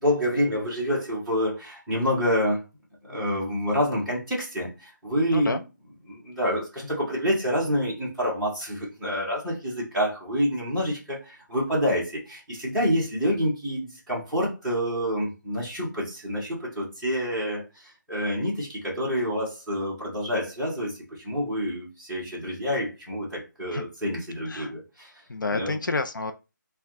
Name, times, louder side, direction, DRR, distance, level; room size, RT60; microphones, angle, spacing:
voice 1, 0.0-2.6 3.0-5.6 6.0-25.1 25.5-25.8, equal, ahead, 0.9 m, -27 dB
voice 2, 25.3-26.3, left 3 dB, 75° left, 0.6 m, -29 dB
4.5 x 2.3 x 3.6 m
hypercardioid pair, 175°, 11 cm